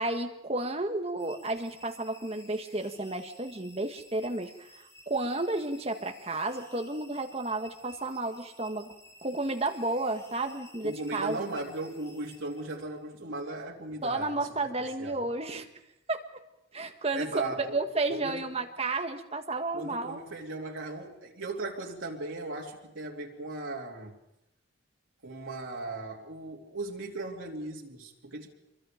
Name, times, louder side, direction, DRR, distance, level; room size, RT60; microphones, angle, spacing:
voice 1, 0.0-8.9 9.2-11.5 14.0-15.7 16.1-16.2 16.7-20.2, right 2 dB, 30° right, 5 dB, 1.7 m, -32 dB
sound 1, 1.2-13.0, left 1 dB, 15° left, 4.4 m, -55 dB
voice 2, 10.8-14.3 15.0-15.2 17.1-17.8 18.1-18.4 19.7-24.1 25.2-28.5, right 2 dB, 90° right, -1 dB, 3.0 m, -37 dB
26.0 x 23.0 x 5.2 m, 0.86 s
head